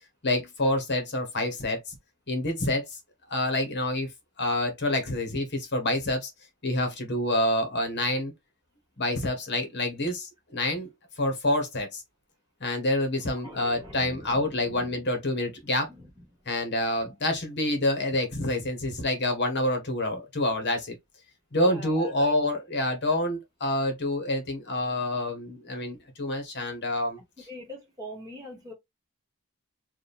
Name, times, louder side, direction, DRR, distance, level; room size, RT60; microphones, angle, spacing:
voice 1, 0.2-2.0 2.3-3.0 3.3-4.1 4.4-6.3 6.6-8.3 9.0-10.9 11.2-12.0 12.6-15.9 16.5-20.9 21.5-27.2, left 1 dB, 50° left, 1.6 m, -27 dB
voice 2, 13.4-15.0 15.9-16.1 21.6-22.3 27.5-28.7, equal, 15° right, 2.4 m, -43 dB
4.4 x 3.0 x 3.5 m
head